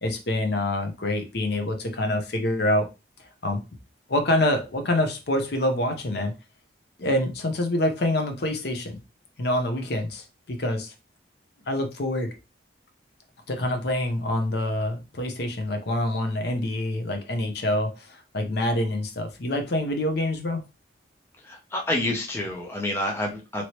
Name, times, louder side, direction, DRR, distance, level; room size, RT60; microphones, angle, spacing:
voice 1, 0.0-2.9 3.4-3.6 4.1-6.3 7.0-9.0 9.4-10.9 11.7-12.3 13.5-20.6, left 1 dB, 55° left, 6 dB, 0.7 m, -26 dB
voice 2, 21.5-23.6, left 1 dB, 10° left, 0 dB, 0.5 m, -28 dB
2.9 x 2.9 x 3.0 m, 0.27 s
head